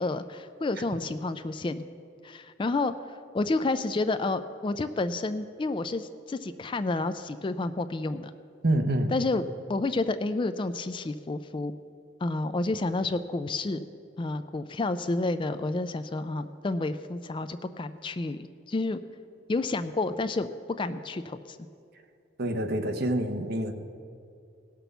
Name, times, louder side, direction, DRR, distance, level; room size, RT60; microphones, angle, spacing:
voice 1, 0.0-1.8 2.2-8.3 9.1-9.4 9.7-11.7 12.2-13.9 14.2-19.0 19.5-20.5 20.8-21.6, left 2 dB, 25° left, 11 dB, 0.3 m, -30 dB
voice 2, 8.6-9.1 22.4-23.7, right 1 dB, 50° right, 6 dB, 0.9 m, -26 dB
17.0 x 6.0 x 6.8 m, 2.5 s
head